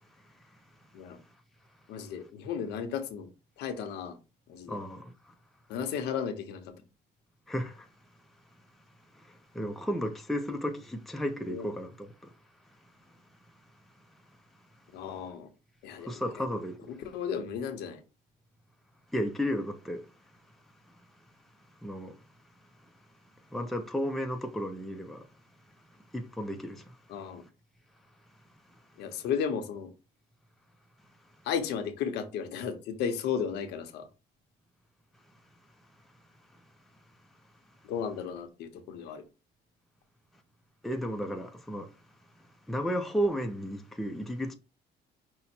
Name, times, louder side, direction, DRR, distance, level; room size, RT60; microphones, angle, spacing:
voice 1, 1.9-3.3 3.6-4.2 4.5-4.8 5.7-6.7 11.5-11.7 14.9-15.5 15.8-16.5 16.9-18.0 27.1-27.4 29.0-29.9 31.4-34.1 37.8-39.2, left 7 dB, 85° left, 0.9 m, -34 dB
voice 2, 4.7-5.1 7.5-7.9 9.2-12.3 16.0-16.9 19.1-20.1 21.8-22.1 23.5-25.3 26.1-26.8 40.8-41.9 42.7-44.5, equal, ahead, 0.5 m, -33 dB
5.5 x 2.1 x 4.3 m
cardioid pair, 110°, 17 cm